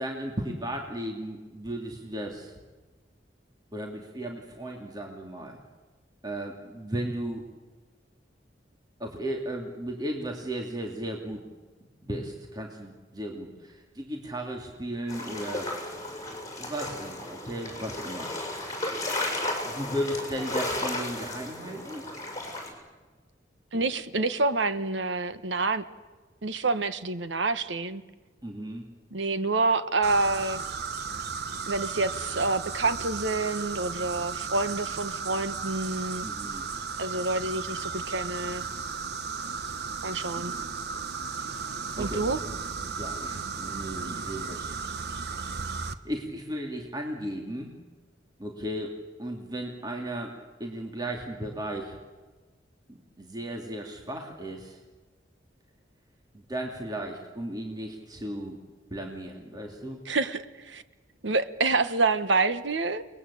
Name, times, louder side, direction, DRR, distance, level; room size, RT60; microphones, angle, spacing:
voice 1, 0.0-2.6 3.7-5.6 6.2-7.4 9.0-11.4 12.0-16.0 16.6-18.3 19.6-22.0 28.4-28.9 36.2-36.6 41.4-41.6 41.9-42.2 42.9-44.7 46.0-47.7 48.4-48.9 49.2-52.0 52.9-54.8 56.3-58.6 58.9-60.0, right 1 dB, 20° right, 1 dB, 2.9 m, -35 dB
sound 1, 15.1-22.7, left 1 dB, 20° left, 6.8 m, -34 dB
voice 2, 23.7-25.8 26.4-28.0 29.1-30.6 31.7-36.3 37.0-38.6 40.0-40.5 42.0-42.4 60.1-60.8 61.2-63.1, right 3 dB, 80° right, 12 dB, 1.4 m, -27 dB
sound 2, 30.0-45.9, right 5 dB, 60° right, 1.2 m, -35 dB
30.0 x 21.0 x 8.5 m, 1.3 s
head